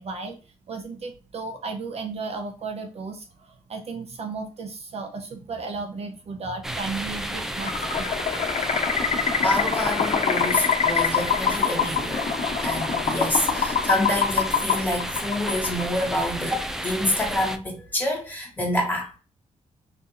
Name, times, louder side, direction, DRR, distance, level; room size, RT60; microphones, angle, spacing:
voice 1, 0.0-8.1 8.6-8.8, right 4 dB, 50° right, 0.6 m, -34 dB
sound 1, 6.6-17.6, equal, 5° right, 0.4 m, -32 dB
sound 2, 7.6-16.1, left 6 dB, 60° left, 1.1 m, -25 dB
voice 2, 9.4-12.3 12.6-19.2, left 1 dB, 15° left, 1.5 m, -27 dB
3.8 x 2.6 x 2.7 m
cardioid pair, 105°, 13 cm